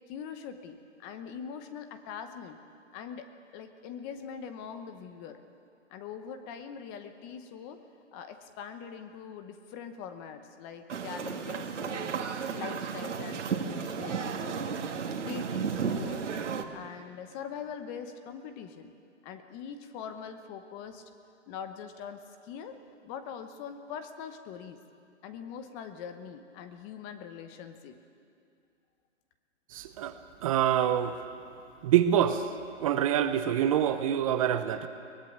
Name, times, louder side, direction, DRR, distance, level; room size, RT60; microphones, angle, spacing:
voice 1, 0.1-2.6 2.9-5.4 5.9-7.8 8.1-12.2 12.5-14.8 15.2-16.4 16.7-18.9 19.2-21.0 21.5-22.8 23.0-24.8 25.2-28.0, left 7 dB, 20° left, 9 dB, 0.9 m, -42 dB
sound 1, 10.9-16.6, right 6 dB, 70° right, 2.1 m, -33 dB
voice 2, 29.7-30.1 30.4-31.1 31.8-32.5 32.8-34.9, right 10 dB, 30° right, 10 dB, 0.8 m, -25 dB
23.0 x 19.5 x 8.8 m, 2.5 s
hypercardioid pair, 150°, 37 cm